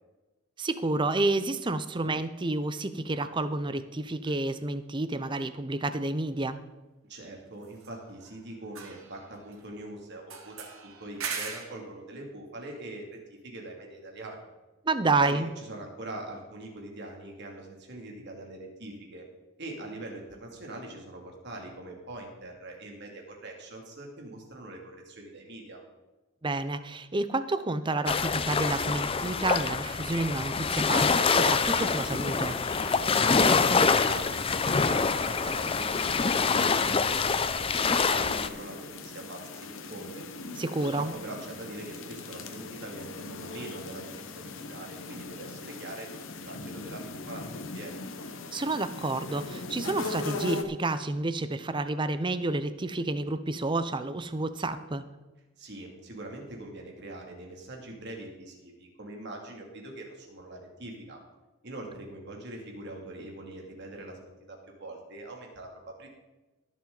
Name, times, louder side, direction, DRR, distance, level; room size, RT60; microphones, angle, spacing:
voice 1, 0.6-6.6 14.8-15.5 26.4-32.6 40.6-41.1 48.5-55.0, right 2 dB, 25° right, 12 dB, 0.6 m, -30 dB
sound 1, 4.2-4.4 7.6-8.4 8.6-9.8 10.3-11.8, right 6 dB, 90° right, 1.7 m, -40 dB
voice 2, 7.1-10.5 10.8-14.5 15.2-19.2 19.6-25.8 33.3-40.2 40.8-48.1 55.6-61.2 61.6-66.1, right 2 dB, 55° right, 1 dB, 2.6 m, -43 dB
sound 2, 28.1-38.5, left 5 dB, 25° left, 0.5 m, -25 dB
sound 3, 31.2-50.6, left 3 dB, 70° left, 1.1 m, -40 dB
20.5 x 7.3 x 4.0 m, 1.1 s
head